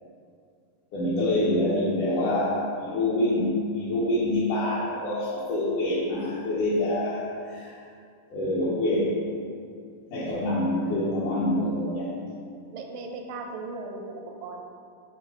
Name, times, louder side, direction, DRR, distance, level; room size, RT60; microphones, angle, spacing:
voice 1, 0.9-7.8 8.3-9.2 10.1-12.2, left 1 dB, 70° left, -8 dB, 2.3 m, -26 dB
voice 2, 12.7-14.6, right 3 dB, 85° right, 3 dB, 2.4 m, -37 dB
8.0 x 3.5 x 4.8 m, 2.3 s
omnidirectional pair, 3.9 m